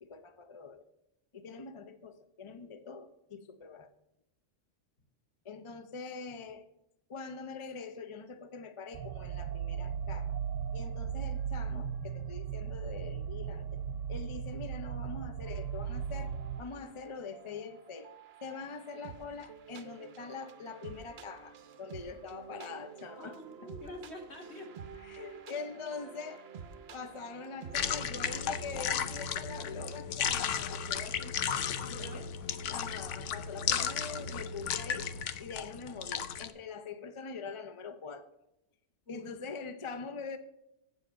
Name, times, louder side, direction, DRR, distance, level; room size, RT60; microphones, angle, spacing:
voice 1, 0.0-0.9 1.3-3.9 5.4-6.7 7.1-10.4 10.7-13.8 14.1-18.1 18.4-23.4 25.0-26.5 26.9-31.4 32.0-32.3 32.7-35.1 35.4-38.3 39.1-40.4, left 5 dB, 35° left, 10 dB, 0.5 m, -44 dB
sound 1, 8.9-16.6, right 8 dB, 90° right, 0.9 m, -37 dB
sound 2, 15.4-28.9, right 7 dB, 60° right, 0.9 m, -50 dB
voice 2, 23.2-24.7 31.7-32.2 39.1-39.4, left 1 dB, 60° left, 0 dB, 2.8 m, -46 dB
sound 3, 27.7-36.5, left 7 dB, 75° left, 1.0 m, -34 dB
8.1 x 7.5 x 5.5 m, 0.84 s
omnidirectional pair, 1.3 m